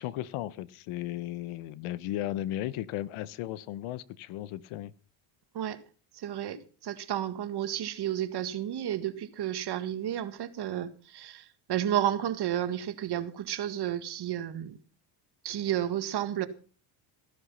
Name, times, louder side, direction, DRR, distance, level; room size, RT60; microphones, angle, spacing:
voice 1, 0.0-4.9, left 14 dB, 80° left, 1.1 m, -35 dB
voice 2, 6.1-6.6 6.8-14.8 15.4-16.5, right 11 dB, 50° right, 1.9 m, -32 dB
15.5 x 11.5 x 5.6 m
cardioid pair, 120°, 49 cm